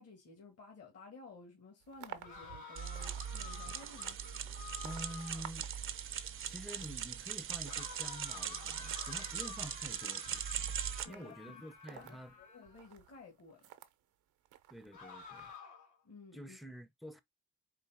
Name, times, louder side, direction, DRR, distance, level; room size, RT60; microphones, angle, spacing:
voice 1, 0.0-4.2 11.0-11.6 11.9-13.7 16.0-16.6, left 3 dB, 55° left, 1.8 m, -55 dB
sound 1, 1.8-13.9 14.4-15.6, right 12 dB, 80° right, 0.7 m, -56 dB
sound 2, 2.2-5.6 7.6-12.9 14.9-16.0, left 6 dB, 75° left, 3.0 m, -51 dB
sound 3, 2.8-11.1, right 8 dB, 45° right, 0.6 m, -40 dB
voice 2, 4.8-5.7 6.4-10.7 11.1-12.3 14.7-15.5 16.3-17.2, equal, ahead, 0.6 m, -48 dB
4.5 x 2.8 x 3.5 m
cardioid pair, 90°, 30 cm